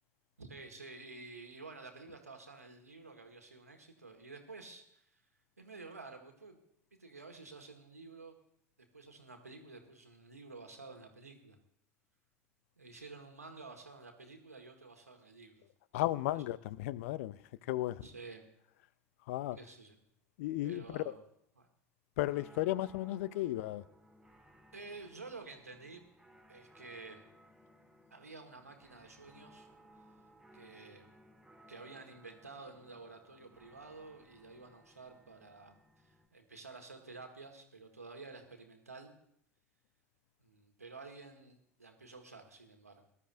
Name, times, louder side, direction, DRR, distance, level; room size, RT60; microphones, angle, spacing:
voice 1, 0.4-5.1 5.6-6.6 7.0-8.4 8.9-11.6 12.8-15.7 18.0-18.5 19.5-20.0 20.6-21.2 21.5-21.7 24.7-26.0 26.5-27.2 28.1-29.7 30.5-31.1 31.7-39.1 40.4-43.0, right 3 dB, 85° right, 1.5 m, -51 dB
voice 2, 15.9-17.4 17.7-18.0 19.3-19.6 20.4-21.0 22.2-23.8, left 15 dB, 60° left, 0.4 m, -34 dB
sound 1, 22.3-36.3, equal, 5° right, 3.2 m, -62 dB
20.0 x 12.0 x 2.6 m
figure-of-eight pair, 70°, 8 cm